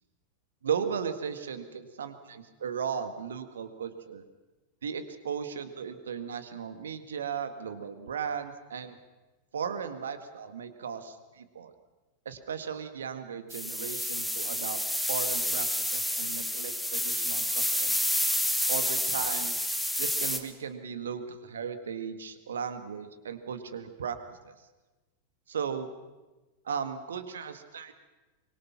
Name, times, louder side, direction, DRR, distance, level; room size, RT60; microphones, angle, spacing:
voice 1, 0.6-4.2 4.8-9.0 9.5-11.7 12.3-14.8 15.1-18.0 18.7-19.5 20.0-24.2 24.4-24.6 25.5-25.9 26.7-27.9, right 7 dB, 65° right, 10 dB, 1.8 m, -36 dB
sound 1, 13.5-20.4, left 1 dB, ahead, 2.0 m, -29 dB
24.5 x 23.0 x 5.9 m, 1.1 s
figure-of-eight pair, 90°, 0 cm